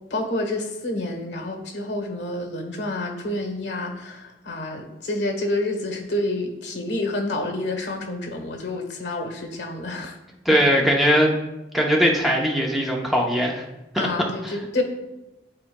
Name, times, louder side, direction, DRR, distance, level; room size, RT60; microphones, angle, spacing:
voice 1, 0.1-10.2 10.5-10.6 14.0-14.8, left 2 dB, 80° left, 4 dB, 1.0 m, -28 dB
voice 2, 10.4-11.4 11.7-13.6 13.9-14.1 14.4-14.6, equal, ahead, -1 dB, 0.7 m, -20 dB
11.5 x 4.1 x 2.2 m, 0.99 s
head